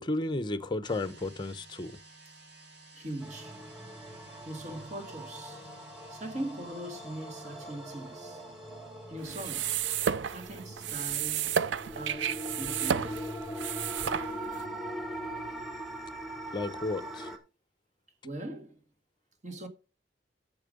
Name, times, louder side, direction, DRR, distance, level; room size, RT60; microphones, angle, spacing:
voice 1, 0.0-1.9 16.5-17.3, left 2 dB, 25° left, 0.7 m, -33 dB
sound 1, 0.8-10.2, right 3 dB, 65° right, 3.4 m, -56 dB
voice 2, 2.9-3.7 4.4-5.7 6.1-8.5 9.1-9.8 10.3-11.7 11.9-13.2 18.2-18.8 19.4-19.7, right 1 dB, 40° right, 1.6 m, -41 dB
sound 2, 3.2-17.4, equal, ahead, 1.3 m, -41 dB
sound 3, 9.2-14.6, right 8 dB, 80° right, 0.5 m, -32 dB
8.8 x 6.9 x 5.2 m
head